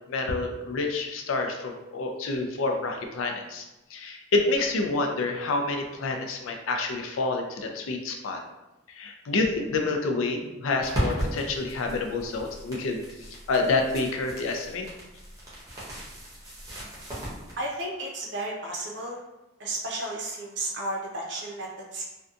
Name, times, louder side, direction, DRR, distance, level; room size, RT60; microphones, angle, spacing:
voice 1, 0.1-3.6 3.9-8.4 8.9-14.9, left 3 dB, 90° left, 3 dB, 0.4 m, -28 dB
sound 1, 10.8-17.5, equal, 15° right, 0.7 m, -36 dB
voice 2, 17.6-19.2 19.6-22.1, right 1 dB, 60° right, -1 dB, 0.6 m, -33 dB
2.6 x 2.2 x 2.5 m, 0.98 s
head